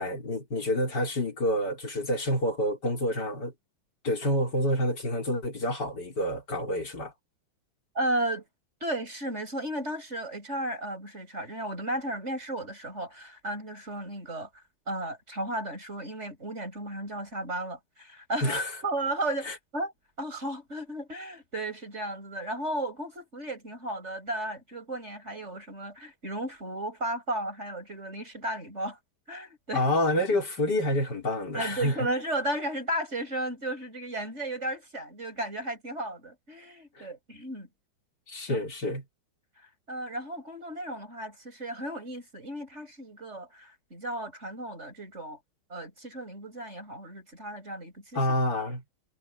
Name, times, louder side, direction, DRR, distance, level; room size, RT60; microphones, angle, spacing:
voice 1, 0.0-3.5 4.0-7.1 18.4-18.7 19.5-19.6 29.7-31.9 37.0-37.1 38.3-39.0 48.1-48.8, left 1 dB, 55° left, 5.4 m, -28 dB
voice 2, 7.9-8.5 8.8-14.5 14.9-19.9 20.2-29.0 29.3-29.8 31.5-37.7 38.5-38.6 39.6-45.4 45.7-48.2, right 1 dB, 30° right, 7.9 m, -34 dB
omnidirectional pair, 2.2 m